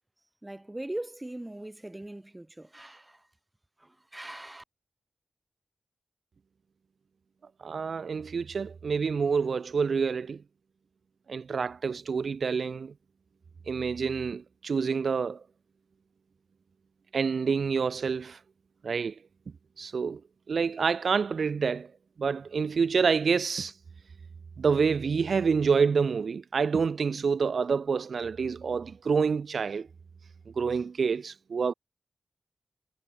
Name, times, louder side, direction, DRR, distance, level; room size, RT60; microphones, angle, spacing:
voice 1, 0.4-3.3 3.8-4.6, right 1 dB, 20° right, 6.8 m, -40 dB
voice 2, 7.6-10.4 11.3-12.9 13.7-15.4 17.1-18.4 18.8-19.1 19.8-20.2 20.5-21.9 22.2-23.7 24.6-29.9 30.6-31.7, right 5 dB, 80° right, 4.6 m, -27 dB
wide cardioid pair, 70°, 0 cm